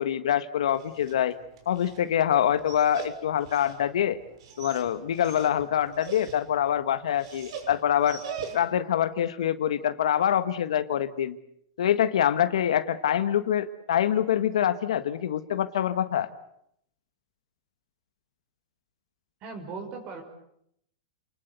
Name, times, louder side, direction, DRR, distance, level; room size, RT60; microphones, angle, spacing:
voice 1, 0.0-1.4 1.6-4.2 4.6-8.2 8.5-11.4 11.8-16.3, left 10 dB, 85° left, 11 dB, 1.5 m, -25 dB
Dog, 0.6-8.9, right 6 dB, 65° right, 6.8 m, -43 dB
voice 2, 19.4-20.2, right 4 dB, 35° right, 5 dB, 5.6 m, -38 dB
29.5 x 20.5 x 8.2 m, 0.74 s
supercardioid pair, 145°, 3 cm